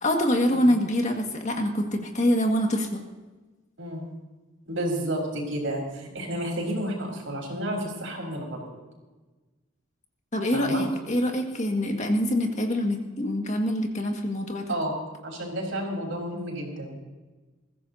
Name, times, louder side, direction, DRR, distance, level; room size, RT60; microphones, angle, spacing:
voice 1, 0.0-3.0 10.3-14.7, equal, 35° left, 2 dB, 1.9 m, -25 dB
voice 2, 4.7-8.6 10.5-10.9 14.7-15.0 15.2-17.0, right 1 dB, 85° right, 0 dB, 5.2 m, -31 dB
21.5 x 15.5 x 2.8 m, 1.2 s
head